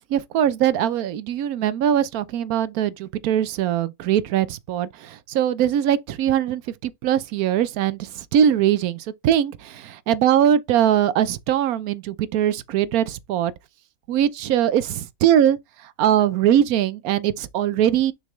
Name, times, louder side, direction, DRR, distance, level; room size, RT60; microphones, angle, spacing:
voice 1, 0.1-13.5 14.1-15.6 16.0-18.1, right 10 dB, 80° right, 1.1 m, -21 dB
6.4 x 5.2 x 3.1 m
omnidirectional pair, 1.5 m